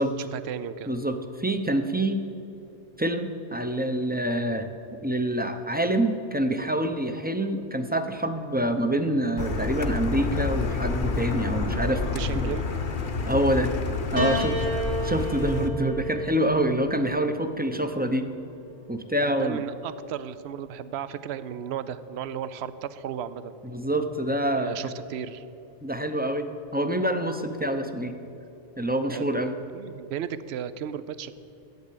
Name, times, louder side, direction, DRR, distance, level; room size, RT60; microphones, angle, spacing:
voice 1, 0.0-0.9 11.6-12.7 14.4-14.6 19.2-23.6 24.5-25.4 29.1-31.3, right 9 dB, 70° right, 14 dB, 0.9 m, -35 dB
voice 2, 0.9-2.2 3.0-12.0 12.4-12.5 13.2-13.7 14.1-14.6 15.0-18.3 18.9-19.6 23.6-24.7 25.8-28.2 28.8-29.6, right 1 dB, 10° right, 7 dB, 0.6 m, -26 dB
Car, 9.4-15.7, left 4 dB, 50° left, 1.0 m, -29 dB
Piano, 14.2-18.6 19.7-20.4, equal, 55° right, 2.8 m, -33 dB
12.0 x 8.6 x 8.4 m, 2.8 s
omnidirectional pair, 1.1 m